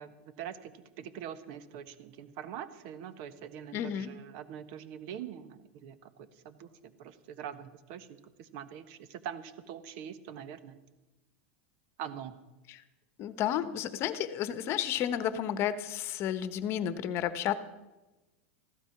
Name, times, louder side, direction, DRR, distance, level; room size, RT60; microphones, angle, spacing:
voice 1, 0.0-10.8 12.0-12.4, right 9 dB, 55° right, 12 dB, 1.3 m, -44 dB
voice 2, 3.7-4.1 12.7-12.8 13.2-17.5, left 10 dB, 40° left, 13 dB, 1.1 m, -32 dB
15.5 x 12.5 x 5.9 m, 1.1 s
supercardioid pair, 135°, 6 cm